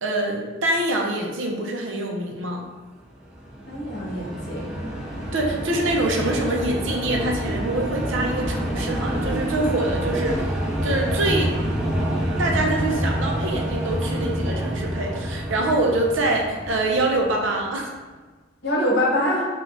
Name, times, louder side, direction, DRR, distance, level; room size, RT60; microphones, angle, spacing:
voice 1, 0.0-2.6 5.3-10.6 10.8-11.5 12.4-17.9, right 2 dB, 70° right, 1 dB, 0.6 m, -25 dB
sound 1, 3.2-17.7, equal, 5° right, 0.4 m, -27 dB
voice 2, 3.7-4.9 18.6-19.5, left 1 dB, 55° left, -5 dB, 1.1 m, -24 dB
5.1 x 2.3 x 2.6 m, 1.3 s
head